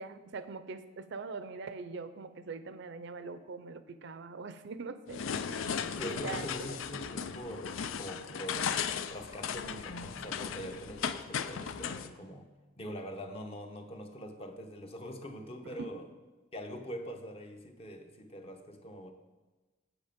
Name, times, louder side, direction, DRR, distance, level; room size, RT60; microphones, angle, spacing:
voice 1, 0.0-5.2 5.5-6.8 15.6-15.9, right 4 dB, 60° right, 12 dB, 0.5 m, -43 dB
sound 1, 5.1-12.1, left 7 dB, 75° left, 0.4 m, -36 dB
voice 2, 6.0-8.8 9.1-12.5 12.8-16.1 16.5-19.1, equal, 30° left, 5 dB, 0.8 m, -43 dB
8.1 x 7.6 x 5.1 m, 1.2 s
head